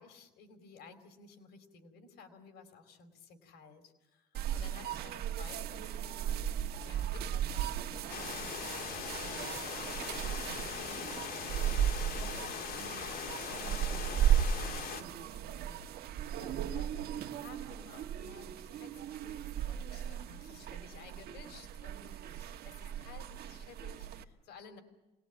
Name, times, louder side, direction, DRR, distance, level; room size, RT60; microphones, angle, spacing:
voice 1, 0.0-24.8, left 5 dB, 80° left, 7 dB, 4.3 m, -56 dB
sound 1, 4.3-24.2, right 9 dB, 70° right, 1.6 m, -36 dB
sound 2, 8.1-15.0, left 7 dB, 60° left, 2.8 m, -40 dB
27.0 x 20.0 x 9.2 m, 1.1 s
cardioid pair, 110°, 17 cm